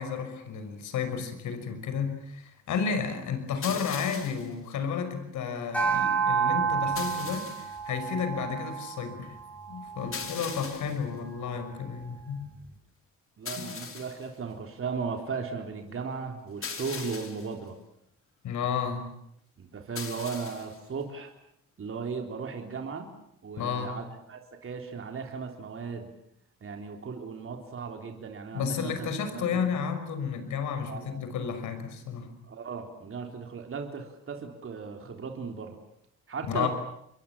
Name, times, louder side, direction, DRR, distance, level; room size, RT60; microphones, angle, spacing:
voice 1, 0.0-9.3 9.7-12.5 13.6-13.7 18.4-19.1 23.6-23.9 28.5-32.3 36.5-36.7, left 6 dB, 75° left, 9 dB, 5.8 m, -32 dB
sound 1, 3.6-4.5 7.0-7.8 10.1-11.0 13.5-14.3 16.6-17.5 20.0-20.8, left 5 dB, 45° left, 4.3 m, -39 dB
sound 2, 5.7-10.3, right 6 dB, 5° left, 7.7 m, -30 dB
voice 2, 13.4-17.8 19.6-21.3 21.8-23.1 23.4-26.1 26.6-29.7 30.9-31.2 32.5-35.8 36.3-36.7, right 5 dB, 45° right, 3 dB, 3.6 m, -36 dB
29.5 x 23.0 x 7.3 m, 0.73 s
cardioid pair, 90°, 30 cm